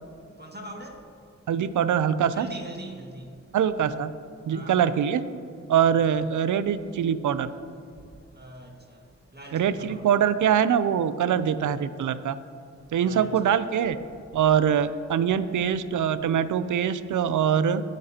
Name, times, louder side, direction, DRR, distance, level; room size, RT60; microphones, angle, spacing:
voice 1, 0.4-1.0 2.3-3.3 4.5-4.8 8.4-8.7 9.3-10.1 13.0-13.7, right 1 dB, 35° right, 2 dB, 1.9 m, -41 dB
voice 2, 1.5-2.5 3.5-4.1 4.5-5.2 5.7-7.5 9.5-12.4 12.9-14.0 14.3-17.8, right 8 dB, 90° right, 13 dB, 0.5 m, -23 dB
20.0 x 9.0 x 2.9 m, 2.4 s
cardioid pair, 55°, 29 cm